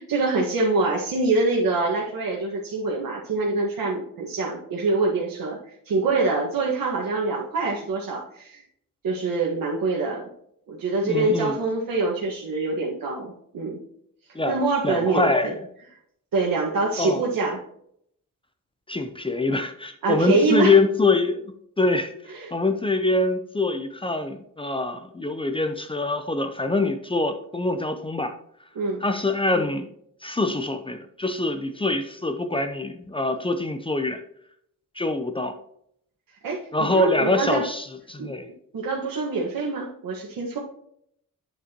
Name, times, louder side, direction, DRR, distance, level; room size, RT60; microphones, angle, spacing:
voice 1, 0.0-5.6 5.9-8.6 9.0-10.3 10.7-13.8 14.5-15.5 16.3-17.6 20.0-20.8 22.3-22.5 28.8-29.0 36.4-37.6 38.2-38.3 38.7-40.6, right 3 dB, 90° right, -3 dB, 1.7 m, -25 dB
voice 2, 11.1-11.6 14.3-14.6 14.8-15.6 17.0-17.2 18.9-21.4 21.8-22.1 22.5-28.3 29.0-29.9 30.2-34.2 35.0-35.5 36.7-38.5, left 2 dB, 15° left, 7 dB, 0.6 m, -24 dB
9.1 x 6.9 x 2.9 m, 0.69 s
wide cardioid pair, 150°, 33 cm